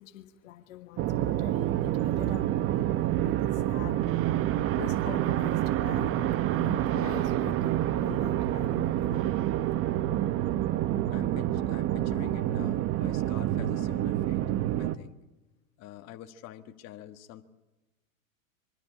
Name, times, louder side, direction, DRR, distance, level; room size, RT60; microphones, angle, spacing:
voice 1, 0.0-4.1 4.7-9.3, left 13 dB, 65° left, 1.4 m, -45 dB
sound 1, 1.0-15.0, right 13 dB, 30° right, 0.9 m, -28 dB
voice 2, 11.1-14.4 14.8-15.2 15.8-17.4, left 12 dB, 40° left, 1.5 m, -46 dB
23.0 x 14.0 x 9.7 m
hypercardioid pair, 120°, 42 cm